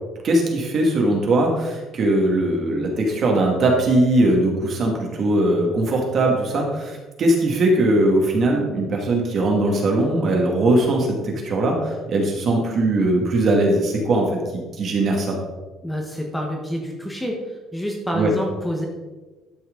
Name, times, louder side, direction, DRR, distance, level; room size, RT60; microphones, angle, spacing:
voice 1, 0.2-14.4 14.8-15.4 18.1-18.3, right 1 dB, 45° right, 0 dB, 2.1 m, -20 dB
voice 2, 15.8-17.4 17.7-18.8, equal, 5° left, 0 dB, 1.3 m, -27 dB
12.0 x 6.3 x 3.9 m, 1.2 s
cardioid pair, 145°, 0 cm